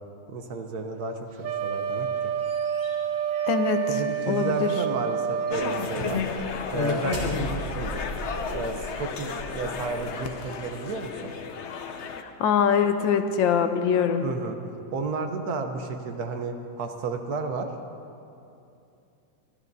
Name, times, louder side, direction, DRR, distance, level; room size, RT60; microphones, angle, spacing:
voice 1, 0.3-2.3 3.9-6.2 6.7-8.0 8.5-11.3 14.2-17.7, right 3 dB, 60° right, 5 dB, 1.3 m, -32 dB
Wind instrument woodwind instrument, 1.4-5.9, right 7 dB, 90° right, 1.4 m, -28 dB
sound 1, 2.0-4.9 5.4-5.6 6.1-10.3, equal, 30° right, 3.3 m, -40 dB
voice 2, 3.5-3.9 4.3-4.7 12.2-14.2, left 7 dB, 90° left, 8 dB, 1.5 m, -23 dB
sound 2, 5.5-12.2, left 5 dB, 60° left, 0.7 m, -32 dB
24.5 x 13.0 x 2.7 m, 2.7 s
omnidirectional pair, 2.0 m